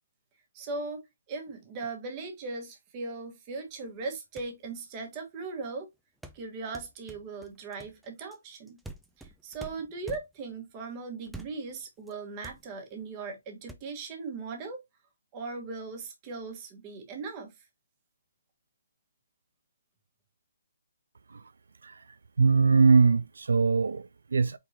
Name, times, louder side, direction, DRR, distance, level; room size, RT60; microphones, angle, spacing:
voice 1, 0.5-5.9 6.3-8.8 9.2-14.8 15.3-17.6, right 4 dB, 25° right, 1.2 m, -39 dB
sound 1, 4.1-4.2 4.4-4.7 6.2-10.6 11.3-11.8 12.1-12.2 12.4-13.0 13.7-13.8, right 2 dB, 5° right, 0.4 m, -46 dB
voice 2, 22.4-24.6, right 4 dB, 80° right, 0.3 m, -22 dB
4.4 x 3.8 x 2.7 m
hypercardioid pair, 160°, 0 cm